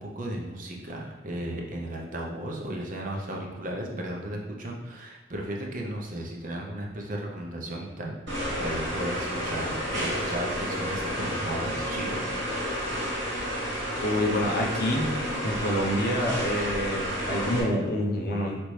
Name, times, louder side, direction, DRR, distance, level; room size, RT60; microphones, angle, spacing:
voice 1, 0.0-8.2 8.6-12.2 15.7-15.9, right 1 dB, 45° right, -1 dB, 0.6 m, -35 dB
sound 1, 8.3-17.6, equal, 70° right, 1.5 m, -31 dB
voice 2, 14.0-15.1 15.4-18.6, equal, 55° left, 0 dB, 0.8 m, -27 dB
5.1 x 2.9 x 3.2 m, 1.2 s
head